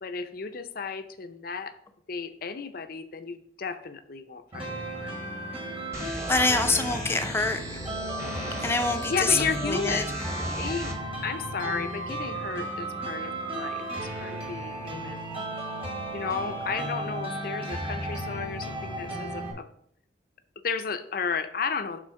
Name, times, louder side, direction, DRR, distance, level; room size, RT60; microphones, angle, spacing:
voice 1, 0.0-1.7 2.1-5.1 9.1-10.2 10.6-10.9 11.2-15.2 16.1-19.7 20.6-22.0, left 5 dB, 55° left, 9 dB, 0.6 m, -33 dB
sound 1, 4.5-19.5, right 1 dB, 30° right, 1.5 m, -34 dB
sound 2, 5.9-10.9, equal, 15° right, 1.1 m, -37 dB
voice 2, 6.0-7.8 8.6-10.0, left 3 dB, 15° left, 7 dB, 0.5 m, -26 dB
6.3 x 3.9 x 5.6 m, 0.69 s
head